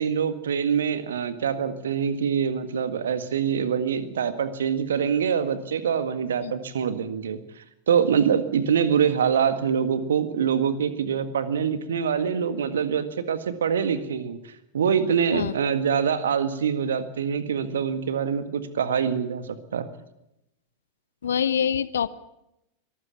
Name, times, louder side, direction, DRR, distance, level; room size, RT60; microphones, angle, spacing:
voice 1, 0.0-14.4 14.7-19.9, right 7 dB, 65° right, 11 dB, 1.8 m, -25 dB
voice 2, 21.2-22.1, left 8 dB, 65° left, 17 dB, 0.7 m, -25 dB
23.5 x 14.0 x 8.6 m, 0.85 s
figure-of-eight pair, 90°, 0 cm